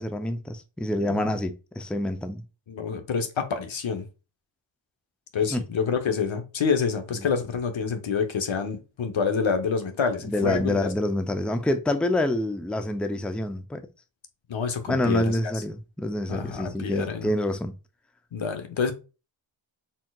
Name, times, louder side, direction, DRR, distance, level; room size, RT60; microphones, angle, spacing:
voice 1, 0.0-2.4 5.5-5.6 10.3-13.9 14.9-17.7, left 1 dB, ahead, 0.5 m, -27 dB
voice 2, 2.7-4.1 5.3-10.9 14.5-15.5 16.3-17.3 18.3-18.9, left 5 dB, 75° left, 0.9 m, -27 dB
4.3 x 3.7 x 2.3 m
cardioid pair, 55°, 47 cm